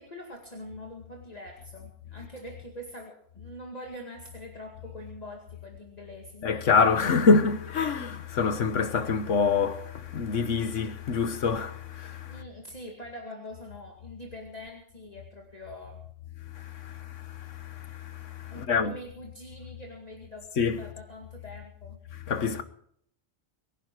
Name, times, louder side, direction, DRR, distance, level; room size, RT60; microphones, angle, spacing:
voice 1, 0.0-6.5 12.3-16.0 18.5-22.0, equal, 35° left, 2.3 m, -44 dB
voice 2, 6.4-12.4 16.5-18.9 20.6-20.8 22.3-22.6, left 5 dB, 85° left, 1.6 m, -26 dB
23.0 x 10.5 x 4.7 m
omnidirectional pair, 1.2 m